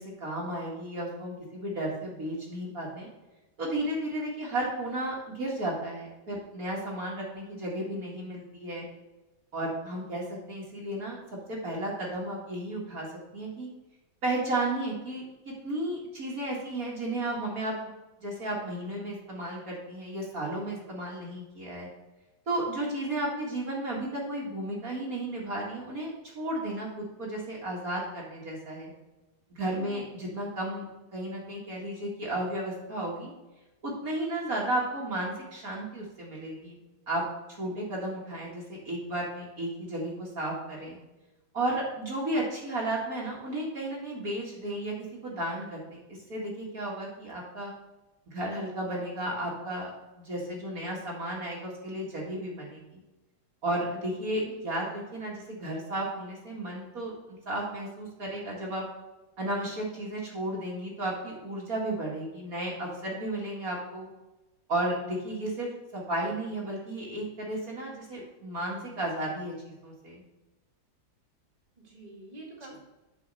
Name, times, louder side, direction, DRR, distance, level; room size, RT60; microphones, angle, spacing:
voice 1, 0.0-3.1 3.6-8.9 9.5-11.2 11.5-13.1 13.3-13.7 14.2-17.7 18.2-21.9 22.5-28.9 29.5-30.8 31.1-33.3 33.8-36.8 37.1-37.2 37.6-41.0 41.5-45.0 45.2-46.0 46.3-47.7 48.3-49.9 50.2-53.0 53.6-58.8 59.4-64.1 64.7-70.2, right 1 dB, 50° right, -4 dB, 2.4 m, -33 dB
voice 2, 29.7-30.0 54.4-54.7 71.8-72.8, right 2 dB, 20° right, -2 dB, 2.2 m, -46 dB
8.3 x 5.0 x 6.6 m, 1.1 s
omnidirectional pair, 2.1 m